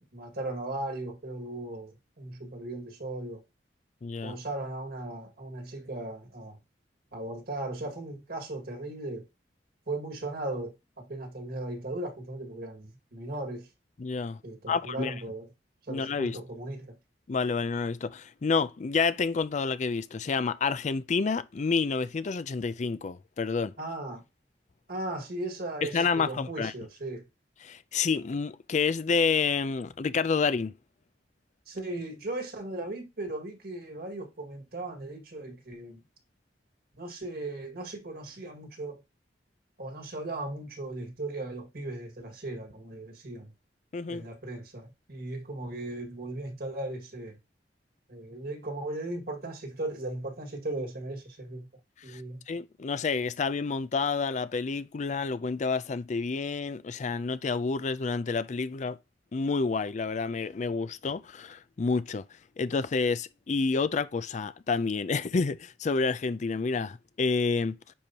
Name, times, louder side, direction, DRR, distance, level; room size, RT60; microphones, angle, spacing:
voice 1, 0.0-3.4 4.2-6.6 7.1-9.2 9.9-13.7 14.4-15.5 15.9-17.0 23.8-24.2 24.9-27.2 31.7-36.0 37.0-39.0 39.8-43.5 44.1-47.4 48.1-51.7 52.0-52.4, right 2 dB, 60° right, 2.0 m, -37 dB
voice 2, 4.0-4.4 14.0-14.4 14.7-15.1 15.9-16.4 17.3-23.7 25.9-26.7 27.6-30.7 43.9-44.2 52.1-52.2 52.5-59.0 59.3-62.2 62.6-67.7, left 4 dB, 40° left, 0.4 m, -29 dB
10.0 x 4.6 x 2.9 m
head